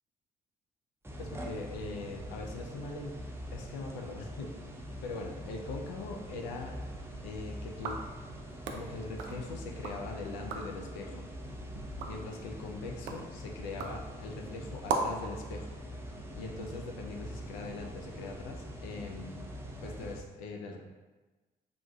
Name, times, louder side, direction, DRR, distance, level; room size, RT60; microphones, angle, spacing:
sound 1, 1.0-20.2, equal, 10° right, 0.6 m, -43 dB
voice 1, 1.2-3.1 3.5-4.5 5.0-6.8 7.2-8.0 8.7-11.3 12.1-15.8 16.4-19.5 19.8-20.8, left 3 dB, 80° left, 2 dB, 0.4 m, -41 dB
sound 2, 7.7-10.0 10.3-10.8 11.3-15.3, right 4 dB, 70° right, 0.4 m, -39 dB
3.6 x 2.4 x 2.3 m, 1.2 s
hypercardioid pair, 45°, 21 cm